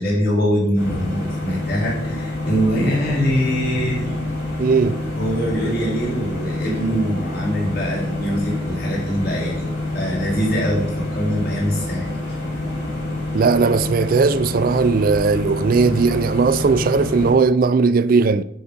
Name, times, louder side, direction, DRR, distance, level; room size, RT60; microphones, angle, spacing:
voice 1, 0.0-4.2 5.2-9.6 9.9-12.4, equal, 50° left, 3.6 m, -23 dB
sound 1, 0.7-17.3, left 2 dB, 65° left, 4.3 m, -27 dB
voice 2, 4.6-5.0 13.3-18.4, right 4 dB, 45° right, 0.3 m, -17 dB
12.5 x 5.5 x 5.2 m
head